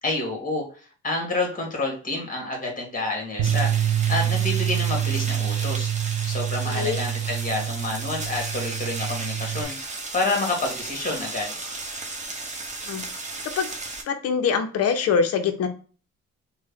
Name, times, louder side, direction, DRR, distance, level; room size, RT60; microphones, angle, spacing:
voice 1, 0.0-3.7 4.1-5.9 6.2-9.7 10.1-11.5, left 2 dB, 30° left, 0 dB, 1.6 m, -28 dB
sound 1, 3.4-14.0, right 3 dB, 25° right, 0.9 m, -35 dB
Bass guitar, 3.4-9.6, right 11 dB, 85° right, 0.5 m, -26 dB
voice 2, 14.1-15.7, left 6 dB, 55° left, 7 dB, 0.7 m, -23 dB
3.1 x 2.2 x 3.7 m, 0.38 s
cardioid pair, 95°, 29 cm